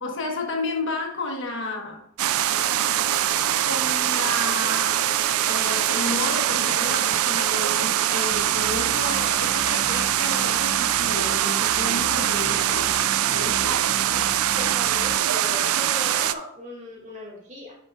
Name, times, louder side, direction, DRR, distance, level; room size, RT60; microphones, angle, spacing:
voice 1, 0.0-2.0 3.6-5.1 5.4-13.8, left 2 dB, 60° left, 2 dB, 1.3 m, -32 dB
sound 1, 2.2-16.3, right 12 dB, 80° right, 0.4 m, -23 dB
sound 2, 2.5-7.9, left 4 dB, 35° left, 0.9 m, -40 dB
sound 3, 8.3-15.2, equal, 10° left, 0.4 m, -38 dB
voice 2, 14.5-17.8, left 1 dB, 35° right, -2 dB, 2.3 m, -37 dB
9.6 x 5.7 x 2.4 m, 0.70 s
head